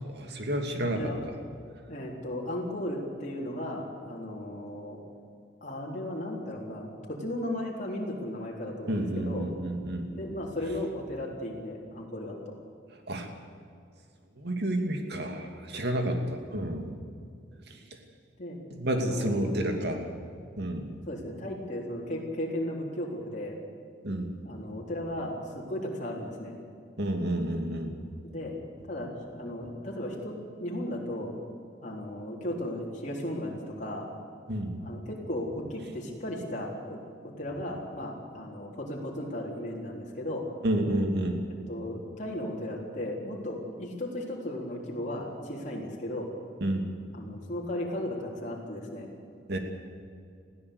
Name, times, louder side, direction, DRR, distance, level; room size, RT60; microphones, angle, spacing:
voice 1, 0.1-1.1 8.9-10.1 13.1-13.3 14.4-16.9 18.7-20.0 20.6-20.9 24.0-24.3 27.0-27.9 34.5-34.8 40.6-41.4 46.6-46.8 49.5-49.6, right 1 dB, 60° right, 4 dB, 2.7 m, -30 dB
voice 2, 1.9-5.0 5.6-9.5 10.1-12.5 18.4-18.6 18.9-19.5 21.1-23.6 24.4-26.6 28.2-28.5 28.9-31.3 31.8-34.1 34.8-37.0 37.2-40.4 41.7-46.3 47.1-49.1, left 1 dB, 40° left, -3 dB, 4.0 m, -35 dB
20.5 x 15.5 x 8.5 m, 2.3 s
head